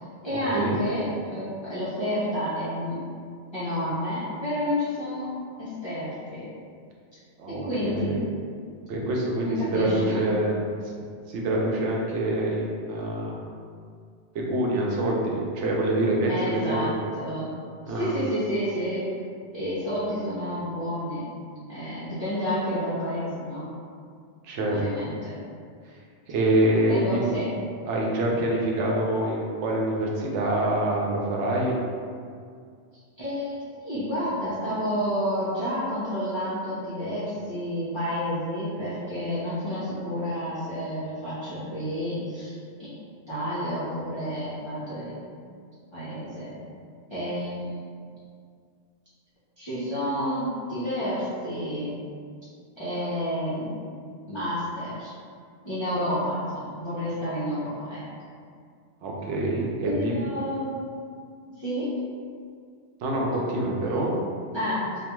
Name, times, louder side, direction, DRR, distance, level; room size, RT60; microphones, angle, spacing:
voice 1, 0.2-3.1 3.5-5.3 5.6-6.5 7.5-8.2 9.4-10.3 16.3-17.5 17.9-19.1 19.5-21.3 21.7-23.6 24.7-25.4 26.9-27.5 33.2-43.0 43.3-45.3 45.9-46.6 47.1-47.8 49.6-52.0 52.8-53.7 54.3-55.1 55.6-58.0 59.8-60.8 61.6-61.9 64.5-64.8, equal, 35° left, -13 dB, 0.5 m, -30 dB
voice 2, 7.4-8.2 8.9-11.0 11.3-13.5 14.3-16.9 17.9-18.1 24.4-25.1 26.3-27.2 27.9-31.8 59.0-60.3 63.0-64.1, right 1 dB, 90° right, -2 dB, 0.9 m, -26 dB
2.4 x 2.2 x 2.9 m, 2.2 s
omnidirectional pair, 1.2 m